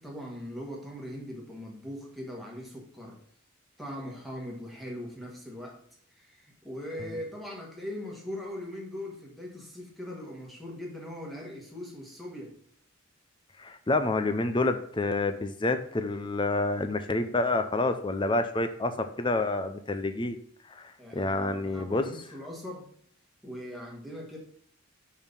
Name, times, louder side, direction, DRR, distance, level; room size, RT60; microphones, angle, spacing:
voice 1, 0.0-3.2 3.8-5.8 6.1-12.6 21.0-22.9 23.4-24.4, left 1 dB, ahead, -2 dB, 1.4 m, -40 dB
voice 2, 13.6-20.4 20.7-22.1, left 2 dB, 20° left, 9 dB, 0.5 m, -28 dB
5.3 x 4.6 x 5.3 m, 0.62 s
head